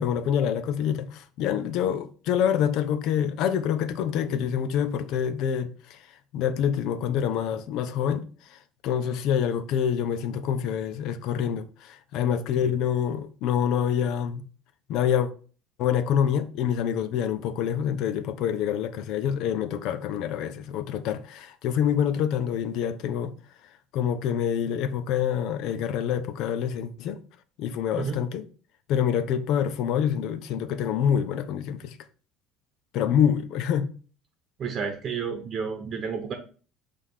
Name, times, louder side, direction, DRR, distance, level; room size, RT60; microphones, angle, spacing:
voice 1, 0.0-6.0 6.3-8.2 8.8-14.4 14.9-15.3 15.8-23.3 23.9-27.2 27.6-28.4 28.9-31.9 32.9-33.9, left 8 dB, 65° left, 0.6 m, -26 dB
voice 2, 34.6-36.3, right 6 dB, 40° right, 1.0 m, -31 dB
5.3 x 3.4 x 5.6 m
cardioid pair, 120°, 0 cm